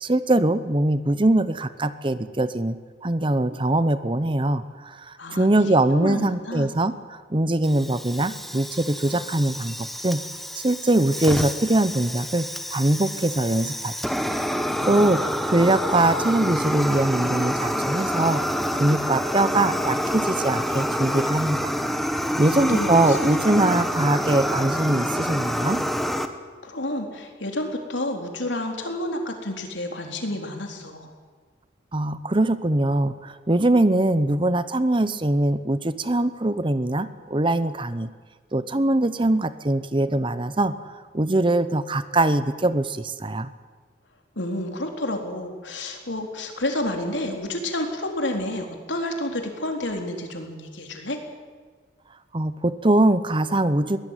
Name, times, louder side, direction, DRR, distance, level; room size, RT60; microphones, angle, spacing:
voice 1, 0.0-10.2 10.6-13.9 14.5-14.6 14.8-15.2 15.5-18.4 18.7-21.7 22.4-25.8 31.9-38.1 38.5-43.5 52.3-54.0, right 1 dB, 25° right, 13 dB, 0.9 m, -22 dB
voice 2, 5.2-6.7 14.8-15.1 22.5-23.2 23.6-23.9 26.6-31.1 44.4-51.2, left 1 dB, 75° left, 3 dB, 3.9 m, -30 dB
Fire, 7.6-26.3, equal, ahead, 1.3 m, -27 dB
22.5 x 18.0 x 9.2 m, 1.5 s
head